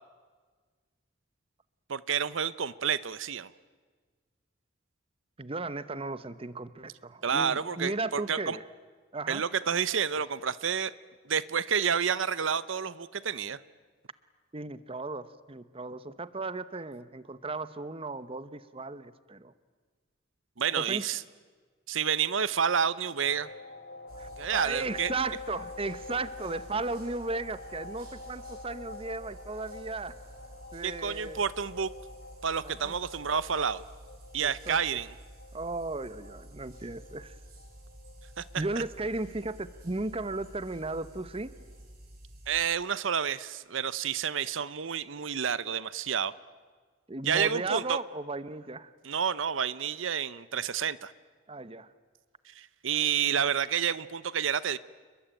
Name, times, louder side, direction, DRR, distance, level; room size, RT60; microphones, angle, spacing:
voice 1, 1.9-3.5 7.2-8.6 9.3-10.9 11.2-13.6 20.6-21.2 21.9-23.5 24.4-25.1 30.8-31.9 32.4-33.8 34.3-35.1 38.4-38.5 42.5-46.3 47.2-48.0 49.0-51.1 52.5-54.8, right 7 dB, 75° right, 17 dB, 0.8 m, -29 dB
voice 2, 5.4-8.6 9.1-9.4 14.5-19.5 20.7-21.1 24.2-30.1 30.7-31.4 32.6-32.9 34.4-34.8 35.5-37.4 38.5-41.5 47.1-48.9 51.5-51.9, right 3 dB, 30° right, 15 dB, 0.9 m, -35 dB
sound 1, 23.2-41.8, left 3 dB, 55° left, 3.5 m, -48 dB
sound 2, 24.1-42.7, right 1 dB, 50° right, 6.4 m, -50 dB
29.5 x 22.5 x 8.9 m, 1.5 s
head